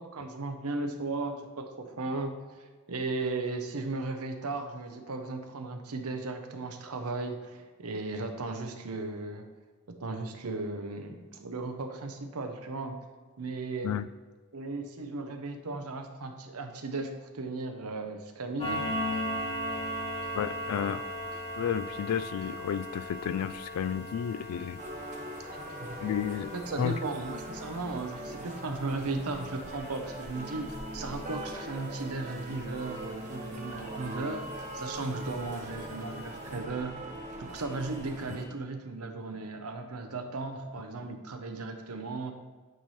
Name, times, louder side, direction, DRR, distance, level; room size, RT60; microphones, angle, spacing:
voice 1, 0.0-9.5 9.9-13.0 13.4-14.0 14.5-18.9 19.9-20.0 25.8-26.0 26.5-36.9 37.4-42.3, right 3 dB, 80° right, 6 dB, 0.8 m, -36 dB
sound 1, 18.6-33.7 34.1-34.3 34.7-34.8 35.3-35.4 35.8-35.9 36.2-36.4, equal, 25° left, 1.7 m, -39 dB
voice 2, 20.3-21.0 21.6-24.8 26.0-27.0, left 8 dB, 80° left, 16 dB, 0.3 m, -32 dB
sound 2, 24.8-38.4, right 1 dB, 35° right, 0.8 m, -41 dB
9.1 x 3.2 x 4.2 m, 1.4 s
head